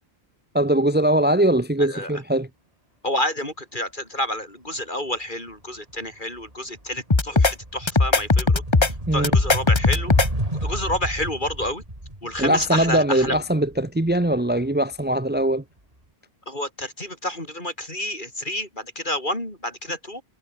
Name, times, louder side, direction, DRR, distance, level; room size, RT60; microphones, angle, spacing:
voice 1, 0.5-2.5 9.1-9.3 12.4-15.6, right 1 dB, 10° right, 1.1 m, -21 dB
voice 2, 1.8-2.1 3.0-8.6 9.1-10.1 10.6-11.8 12.2-13.4 16.5-20.2, left 1 dB, 50° left, 8.0 m, -29 dB
sound 1, 5.9-6.1 6.5-15.4, right 1 dB, 35° right, 5.5 m, -32 dB
sound 2, 7.1-7.5 7.9-8.9 9.2-10.3, left 3 dB, 25° left, 1.2 m, -18 dB
omnidirectional pair, 1.1 m